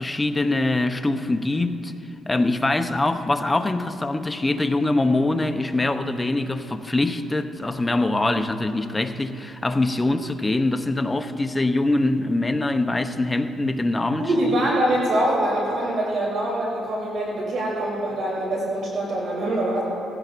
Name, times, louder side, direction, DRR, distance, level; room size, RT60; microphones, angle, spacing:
voice 1, 0.0-1.9 2.2-14.2, left 2 dB, 15° left, 0.7 m, -23 dB
voice 2, 14.2-19.8, right 1 dB, 60° right, 3.3 m, -24 dB
19.0 x 15.5 x 2.6 m
cardioid pair, 90°, 0 cm